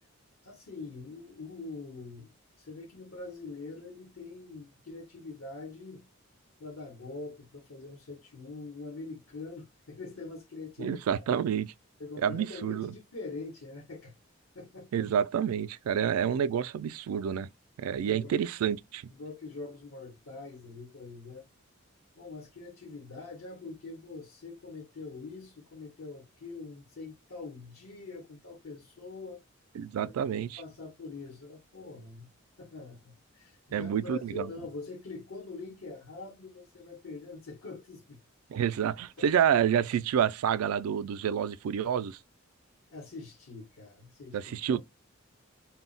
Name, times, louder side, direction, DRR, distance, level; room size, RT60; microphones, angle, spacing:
voice 1, 0.4-2.3 2.6-6.1 6.6-11.2 12.0-14.1 14.5-15.1 17.9-18.4 19.1-21.5 22.2-29.4 30.3-32.3 32.6-38.2 39.2-39.5 42.9-44.4 44.7-44.8, left 3 dB, 75° left, 0.9 m, -44 dB
voice 2, 10.8-11.7 12.2-12.9 14.9-17.5 17.8-19.0 29.8-30.6 33.7-34.5 38.5-42.2 44.3-44.8, right 8 dB, 85° right, 0.3 m, -28 dB
2.2 x 2.0 x 3.8 m
head